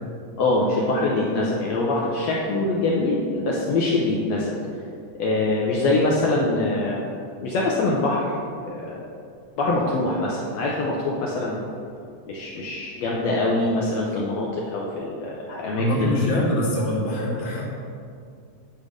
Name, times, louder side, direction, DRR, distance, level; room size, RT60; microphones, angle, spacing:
voice 1, 0.4-4.5 5.2-7.0 7.4-8.3 8.6-9.0 9.6-11.6 12.2-16.4, left 2 dB, 75° left, -3 dB, 1.7 m, -24 dB
voice 2, 15.7-17.6, left 1 dB, 25° left, -6 dB, 1.2 m, -24 dB
10.0 x 3.4 x 6.3 m, 2.3 s
omnidirectional pair, 3.7 m